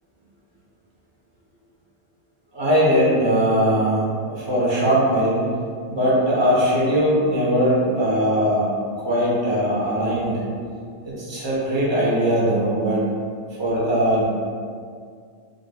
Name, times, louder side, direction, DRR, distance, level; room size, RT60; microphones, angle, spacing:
voice 1, 2.5-5.5 5.9-8.7 9.0-10.5 11.1-13.0 13.6-14.2, equal, 25° right, -7 dB, 0.7 m, -20 dB
3.6 x 2.5 x 2.2 m, 2.1 s
omnidirectional pair, 1.3 m